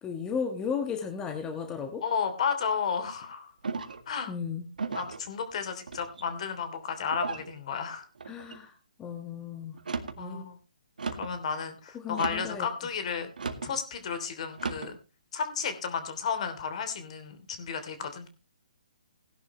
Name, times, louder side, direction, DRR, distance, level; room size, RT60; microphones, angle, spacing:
voice 1, 0.0-2.0 4.3-4.7 8.2-8.7 9.0-9.8 10.2-10.5 11.9-12.7, left 6 dB, 15° left, 5 dB, 1.4 m, -35 dB
voice 2, 2.0-3.5 4.1-4.3 4.9-8.0 10.2-10.6 11.1-13.3 13.6-15.0 15.3-18.3, left 6 dB, 50° left, 9 dB, 3.1 m, -33 dB
sound 1, 3.6-4.1 4.8-5.2 5.9-6.4 7.1-7.5 8.2-8.6 9.7-10.2 11.0-11.4 12.1-12.6 13.4-13.7 14.5-14.9, right 4 dB, 80° right, 1.9 m, -36 dB
17.5 x 11.0 x 3.2 m, 0.31 s
hypercardioid pair, 150°, 5 cm